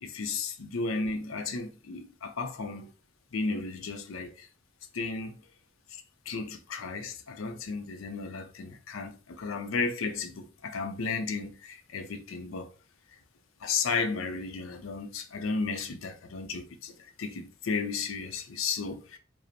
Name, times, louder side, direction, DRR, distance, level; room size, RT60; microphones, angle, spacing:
voice 1, 0.0-2.9 3.3-4.5 4.9-5.5 5.9-12.7 13.1-13.2 13.6-19.2, left 4 dB, 85° left, 0.5 m, -34 dB
4.9 x 2.0 x 2.8 m
head